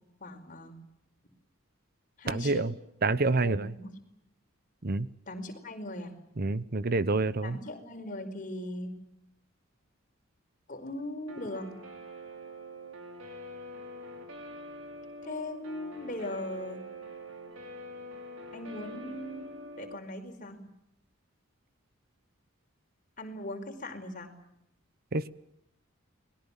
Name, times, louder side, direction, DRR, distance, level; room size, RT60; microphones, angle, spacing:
voice 1, 0.2-0.8 2.2-2.8 3.4-3.9 5.3-6.1 7.4-9.0 10.7-11.8 15.2-16.8 18.5-20.7 23.2-24.3, left 1 dB, 40° left, 4 dB, 5.0 m, -39 dB
voice 2, 2.3-2.7 3.0-3.7 4.8-5.1 6.4-7.6 25.1-25.3, right 3 dB, 50° right, 16 dB, 0.9 m, -27 dB
Guitar, 11.3-20.0, equal, 85° right, 5.3 m, -45 dB
29.5 x 21.5 x 7.3 m, 0.81 s
head